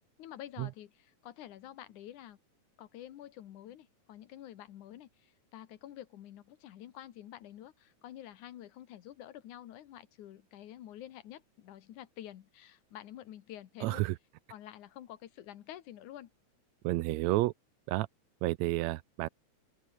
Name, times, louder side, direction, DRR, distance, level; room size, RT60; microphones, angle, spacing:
voice 1, 0.2-2.4 2.8-14.1 14.5-16.3, left 12 dB, 85° left, 2.8 m, -49 dB
voice 2, 13.8-14.2 16.8-17.5 17.9-18.1 18.4-19.3, right 18 dB, 80° right, 1.7 m, -30 dB
open air
omnidirectional pair, 3.4 m